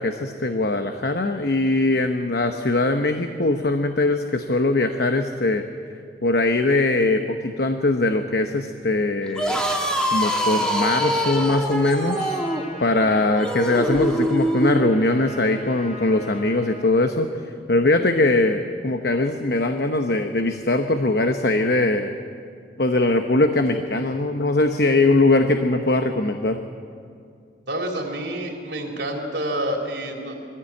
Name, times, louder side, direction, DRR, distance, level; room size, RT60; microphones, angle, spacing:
voice 1, 0.0-5.6 6.2-9.6 10.1-12.4 12.8-17.3 17.7-22.2 22.8-26.6, left 2 dB, 60° left, 6 dB, 0.9 m, -21 dB
sound 1, 9.3-14.9, equal, 5° left, 1.9 m, -24 dB
Trumpet, 12.0-17.0, left 1 dB, 40° left, 2.9 m, -40 dB
voice 2, 27.7-30.5, right 1 dB, 75° right, 0 dB, 3.5 m, -28 dB
22.0 x 14.5 x 8.5 m, 2.3 s
head